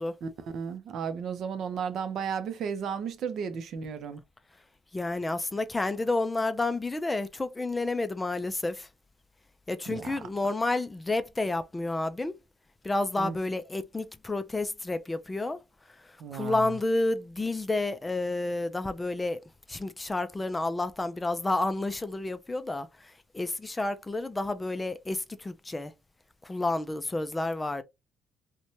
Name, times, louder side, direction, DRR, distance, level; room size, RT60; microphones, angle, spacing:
voice 1, 0.2-4.2 9.9-10.3 13.1-13.4 16.2-16.8, right 6 dB, 65° right, 0.5 m, -34 dB
voice 2, 4.9-8.9 9.7-12.3 12.8-15.6 16.3-19.4 19.7-25.9 26.4-27.8, left 2 dB, 15° left, 0.3 m, -30 dB
2.7 x 2.1 x 2.9 m
cardioid pair, 120°, 0 cm